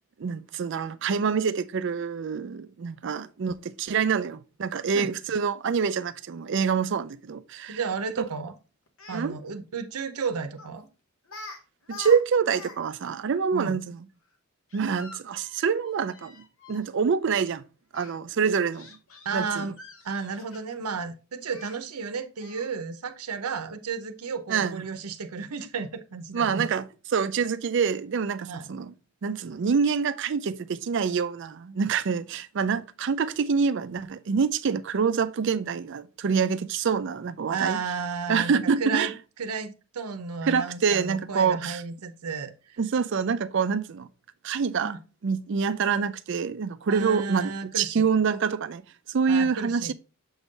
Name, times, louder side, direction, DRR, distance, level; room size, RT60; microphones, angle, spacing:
voice 1, 0.2-7.8 9.1-9.4 11.9-14.0 14.7-17.6 17.9-18.9 19.3-19.7 24.5-24.8 26.3-28.9 29.2-37.8 38.3-39.1 40.5-41.8 42.8-44.1 44.4-45.0 45.2-49.9, right 6 dB, 55° right, 0.4 m, -26 dB
voice 2, 7.7-8.5 9.1-10.9 13.5-13.8 19.2-19.8 20.0-26.7 28.5-28.7 37.5-39.1 39.4-42.8 44.8-45.0 46.9-48.0 49.3-49.9, right 5 dB, 85° right, 0.7 m, -33 dB
Speech, 8.9-9.2 10.6-10.8 11.3-11.6 11.8-12.8 13.0-13.1 14.7-16.9 17.9-18.1 18.7-20.9 21.5-21.8 22.4-22.8, left 3 dB, 65° left, 1.2 m, -45 dB
7.0 x 3.7 x 3.9 m
head